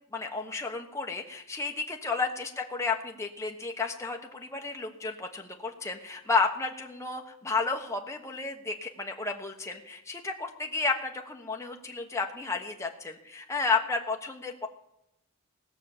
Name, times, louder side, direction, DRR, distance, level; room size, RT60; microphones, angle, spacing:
voice 1, 0.1-14.7, left 4 dB, 15° left, 2 dB, 1.2 m, -32 dB
18.0 x 6.4 x 7.2 m, 0.86 s
head